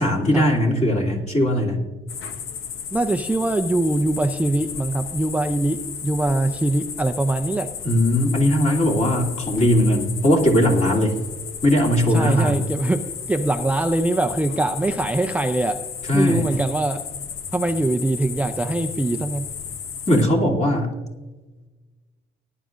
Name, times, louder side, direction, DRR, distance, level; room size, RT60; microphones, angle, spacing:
voice 1, 0.0-1.8 7.8-11.2 11.6-12.7 16.1-16.4 20.1-20.9, left 1 dB, 35° left, -1 dB, 2.9 m, -19 dB
sound 1, 2.1-20.2, left 7 dB, 85° left, 0.9 m, -34 dB
voice 2, 2.9-7.7 12.1-15.9 16.1-17.0 17.5-19.5, right 2 dB, 5° right, 6 dB, 0.5 m, -23 dB
18.5 x 10.5 x 2.6 m, 1.2 s
cardioid pair, 90°, 20 cm